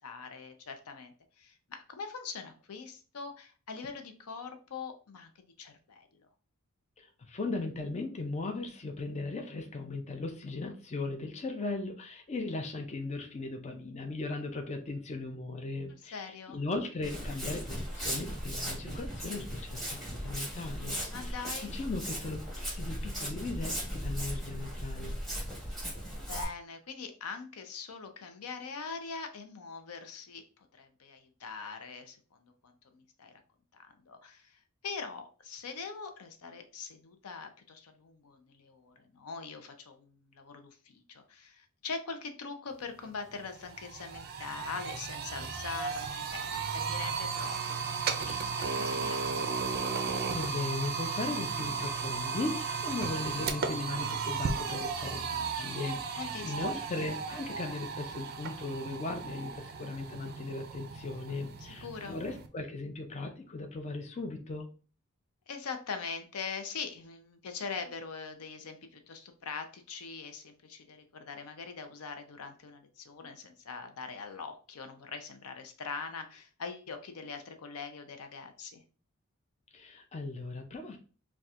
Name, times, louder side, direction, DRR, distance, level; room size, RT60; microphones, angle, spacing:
voice 1, 0.0-6.1 16.1-16.6 21.1-21.7 26.2-33.3 33.7-49.8 56.2-56.7 61.6-62.2 65.5-78.8, left 5 dB, 85° left, 7 dB, 0.6 m, -43 dB
voice 2, 7.0-22.4 22.7-25.1 50.3-64.7 79.7-81.0, left 3 dB, 30° left, 4 dB, 0.4 m, -38 dB
Walk footsteps, 17.0-26.4, equal, ahead, 1.2 m, -37 dB
sound 1, 43.0-43.1 43.4-62.5, right 5 dB, 45° right, 0.4 m, -35 dB
4.1 x 2.3 x 2.4 m, 0.38 s
head